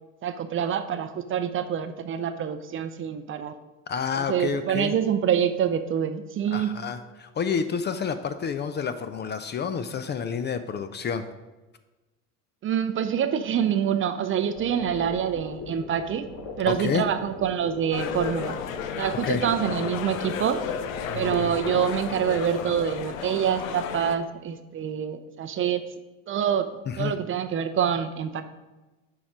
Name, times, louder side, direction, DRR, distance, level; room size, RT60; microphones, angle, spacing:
voice 1, 0.2-3.5 4.2-6.8 12.6-16.3 16.6-18.6 19.0-20.6 21.1-25.8 26.3-26.7 27.0-28.4, right 8 dB, 35° right, 10 dB, 0.5 m, -26 dB
voice 2, 3.9-4.9 6.5-11.2 16.7-17.0 19.2-19.4 26.9-27.1, left 6 dB, 25° left, 10 dB, 0.5 m, -29 dB
sound 1, 14.6-22.9, left 3 dB, 50° left, 1.4 m, -38 dB
sound 2, 17.9-24.1, left 8 dB, 85° left, 0.6 m, -34 dB
7.0 x 4.7 x 5.0 m, 1.1 s
hypercardioid pair, 80°, 39 cm